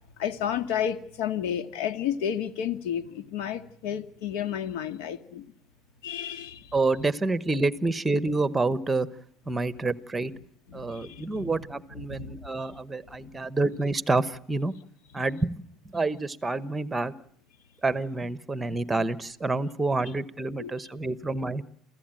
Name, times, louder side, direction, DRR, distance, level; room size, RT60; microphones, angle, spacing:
voice 1, 0.2-5.5 6.0-6.8 9.5-9.7 10.7-11.6 11.9-12.4 12.7-12.8 13.2-13.4 20.6-20.7, left 9 dB, 85° left, 9 dB, 2.1 m, -32 dB
voice 2, 6.7-9.1 9.5-10.3 10.7-14.7 15.1-15.6 15.8-17.1 17.8-21.6, right 3 dB, 10° right, 14 dB, 1.0 m, -28 dB
29.0 x 15.5 x 9.0 m, 0.64 s
cardioid pair, 160°, 0 cm